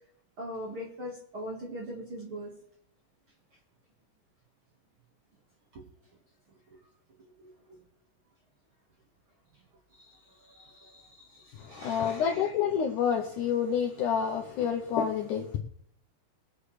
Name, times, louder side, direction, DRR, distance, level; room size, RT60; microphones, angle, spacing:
voice 1, 0.4-2.5 10.0-10.1 10.5-11.0 11.7-12.2, equal, 50° right, 1.8 m, -40 dB
voice 2, 11.5-15.6, left 7 dB, 75° left, 1.8 m, -28 dB
23.0 x 8.1 x 3.3 m
omnidirectional pair, 4.6 m